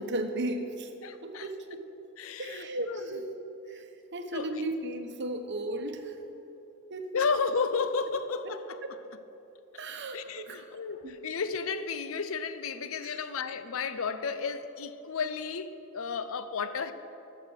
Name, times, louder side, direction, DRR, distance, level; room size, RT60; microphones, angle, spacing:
voice 1, 0.0-0.9 1.2-1.8 2.4-3.3 3.7-6.2 6.9-7.2 8.4-8.5 8.8-9.0 9.8-10.7 11.0-11.2 13.0-13.2, right 1 dB, 55° right, 6 dB, 0.9 m, -35 dB
voice 2, 1.0-1.5 2.2-3.1 4.3-4.5 7.1-8.8 10.1-16.9, left 5 dB, 70° left, 11 dB, 0.6 m, -33 dB
13.0 x 6.6 x 6.4 m, 2.9 s
head